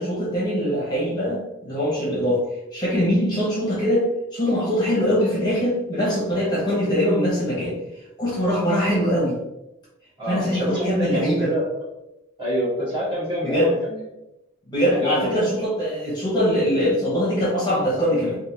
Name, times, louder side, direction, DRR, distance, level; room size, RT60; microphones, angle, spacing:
voice 1, 0.0-2.4 2.7-7.8 8.2-9.4 10.3-11.5 13.4-13.7 14.7-18.4, equal, 20° left, -7 dB, 0.9 m, -22 dB
voice 2, 10.2-11.7 12.4-14.2 14.8-15.7, equal, 25° right, -8 dB, 1.3 m, -27 dB
3.4 x 2.4 x 2.8 m, 0.93 s
head